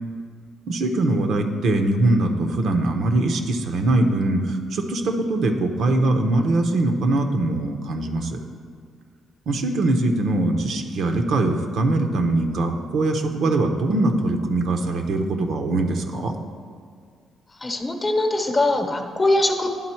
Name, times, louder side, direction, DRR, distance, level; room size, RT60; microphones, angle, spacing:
voice 1, 0.7-8.4 9.5-16.4, right 2 dB, 70° right, 5 dB, 0.7 m, -22 dB
voice 2, 17.6-19.7, left 2 dB, 25° left, 5 dB, 0.9 m, -21 dB
11.0 x 3.8 x 4.4 m, 2.1 s
cardioid pair, 90°, 0 cm